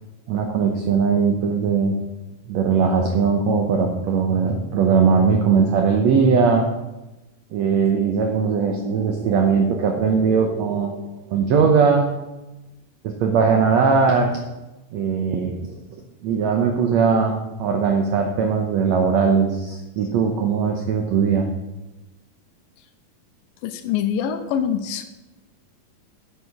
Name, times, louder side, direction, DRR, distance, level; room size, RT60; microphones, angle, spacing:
voice 1, 0.3-2.0 2.5-6.7 7.5-11.0 11.3-12.1 13.0-14.4 14.9-15.5 16.2-17.3 17.6-21.5, right 5 dB, 85° right, 3 dB, 1.5 m, -19 dB
voice 2, 23.6-25.0, left 8 dB, 80° left, 9 dB, 2.3 m, -24 dB
8.6 x 8.2 x 5.8 m, 1.0 s
omnidirectional pair, 4.3 m